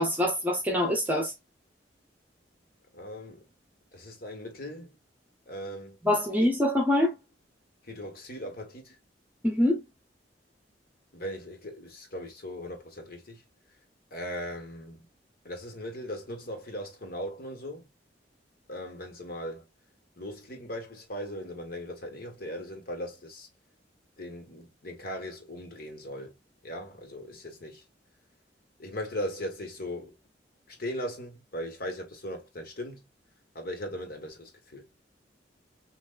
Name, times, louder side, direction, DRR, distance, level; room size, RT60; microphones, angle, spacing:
voice 1, 0.0-1.3 6.0-7.1 9.4-9.8, left 1 dB, 10° right, 1.0 m, -24 dB
voice 2, 2.9-3.5 3.9-4.9 5.5-6.0 7.8-9.0 11.1-13.4 14.1-15.1 15.4-17.9 18.7-19.6 20.2-23.5 24.2-26.3 26.6-27.8 28.8-30.1 30.7-33.1 33.5-34.9, equal, 55° left, 1.6 m, -38 dB
6.3 x 2.6 x 2.5 m
head